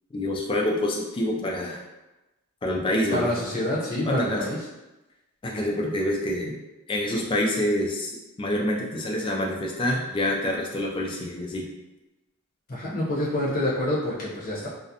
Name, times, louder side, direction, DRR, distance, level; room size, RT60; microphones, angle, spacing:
voice 1, 0.1-1.8 2.6-3.3 4.0-4.4 5.4-6.6 6.9-11.7, left 1 dB, 25° left, -1 dB, 0.3 m, -27 dB
voice 2, 3.1-4.6 12.7-14.7, left 1 dB, 40° left, -7 dB, 0.8 m, -27 dB
2.4 x 2.0 x 2.7 m, 1.0 s
head